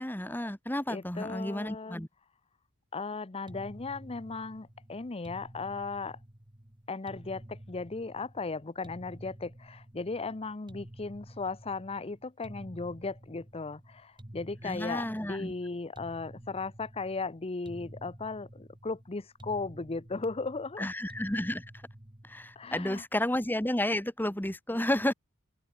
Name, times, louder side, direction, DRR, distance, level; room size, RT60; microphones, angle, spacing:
voice 1, 0.0-2.1 14.6-15.5 20.8-21.7 22.2-25.1, left 1 dB, 10° left, 1.9 m, -31 dB
voice 2, 0.9-2.0 2.9-6.2 6.9-20.9 22.6-23.0, left 3 dB, 25° left, 0.7 m, -36 dB
sound 1, 3.5-22.8, right 1 dB, 20° right, 1.7 m, -50 dB
open air
head